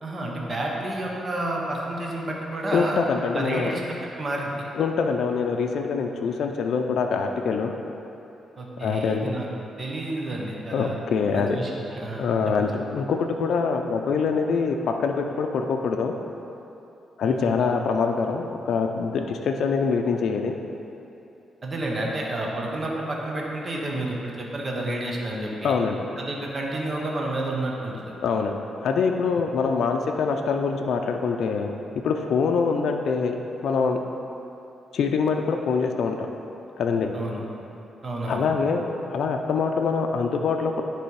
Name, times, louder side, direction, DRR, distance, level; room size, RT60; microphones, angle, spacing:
voice 1, 0.0-3.0 3.3-3.8 4.2-4.5 8.6-9.5 9.8-10.9 11.3-12.3 12.6-12.7 17.2-17.6 21.6-25.8 26.2-28.1 37.1-37.4 38.0-38.5, right 1 dB, 35° right, -2 dB, 1.1 m, -30 dB
voice 2, 2.7-3.7 4.8-7.7 8.8-9.3 10.7-11.6 12.2-16.1 17.2-20.5 25.6-26.1 28.2-33.4 33.6-34.0 34.9-36.3 36.8-37.1 38.3-40.8, left 5 dB, 70° left, 3 dB, 0.5 m, -24 dB
9.9 x 3.3 x 4.7 m, 2.9 s
cardioid pair, 110°, 0 cm